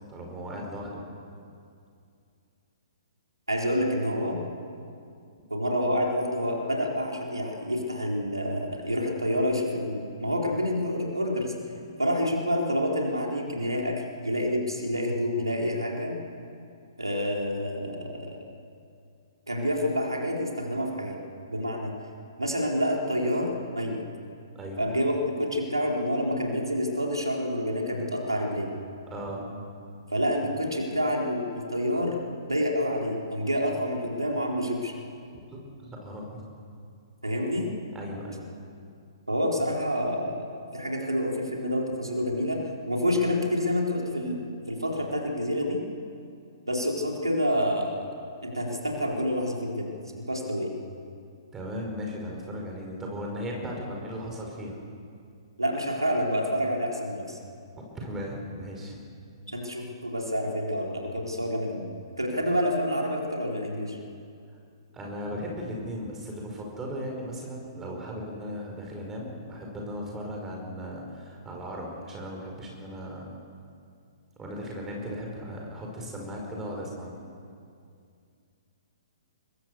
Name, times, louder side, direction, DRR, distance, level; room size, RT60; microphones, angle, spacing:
voice 1, 0.1-1.0 24.5-24.8 29.1-29.5 35.5-36.5 37.9-38.5 51.5-54.8 57.8-59.0 64.9-73.2 74.4-77.2, equal, 15° right, 0 dB, 5.3 m, -37 dB
voice 2, 3.5-4.4 5.5-11.5 12.0-16.1 17.0-18.4 19.5-21.2 21.5-21.9 22.4-24.0 24.8-28.7 30.1-32.2 32.4-34.9 37.2-37.7 39.3-40.5 40.7-42.6 42.9-45.8 46.7-48.1 48.4-49.9 50.1-50.8 55.6-57.4 59.5-61.9 62.2-64.0, equal, 80° right, 0 dB, 4.2 m, -28 dB
25.0 x 22.0 x 6.8 m, 2.4 s
figure-of-eight pair, 120°, 2 cm